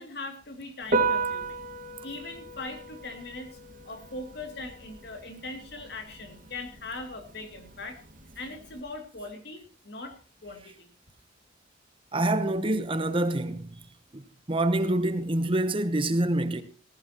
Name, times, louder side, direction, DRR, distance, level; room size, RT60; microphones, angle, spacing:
voice 1, 0.0-1.6 2.0-3.6 3.9-8.0 8.3-10.9, left 2 dB, 60° left, 2.6 m, -40 dB
Piano, 0.8-8.8, right 3 dB, 45° right, 2.0 m, -34 dB
voice 2, 12.1-13.7 14.1-14.2 14.5-16.6, right 1 dB, 30° right, 1.0 m, -26 dB
18.5 x 15.0 x 3.0 m
head